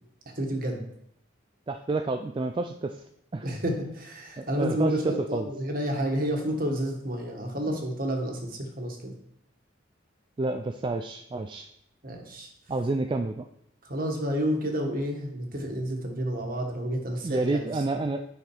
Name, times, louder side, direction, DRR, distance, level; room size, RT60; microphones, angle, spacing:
voice 1, 0.4-0.8 3.4-9.1 12.0-12.5 13.8-17.7, equal, 45° right, 2 dB, 1.6 m, -30 dB
voice 2, 1.7-3.0 3.3-3.5 4.4-5.5 7.7-7.8 10.4-11.7 12.7-13.5 17.2-18.3, right 2 dB, 25° right, 6 dB, 0.3 m, -29 dB
8.8 x 5.8 x 4.5 m, 0.74 s
head